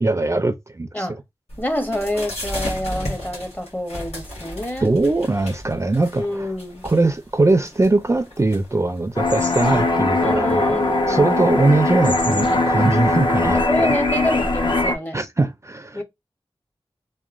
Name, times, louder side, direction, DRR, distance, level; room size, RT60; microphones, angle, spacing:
voice 1, 0.0-1.1 4.8-6.5 6.8-10.8 11.1-13.9 15.1-16.0, right 2 dB, 30° right, 0.4 m, -21 dB
sound 1, 1.5-13.4, left 1 dB, 85° left, 1.1 m, -36 dB
voice 2, 1.6-4.9 6.2-6.8 10.2-11.4 12.5-12.6 13.5-15.3 15.9-16.0, left 1 dB, 20° left, 0.7 m, -26 dB
sound 2, 9.2-14.9, left 2 dB, 55° left, 0.6 m, -20 dB
2.8 x 2.1 x 2.4 m
wide cardioid pair, 50°, 10 cm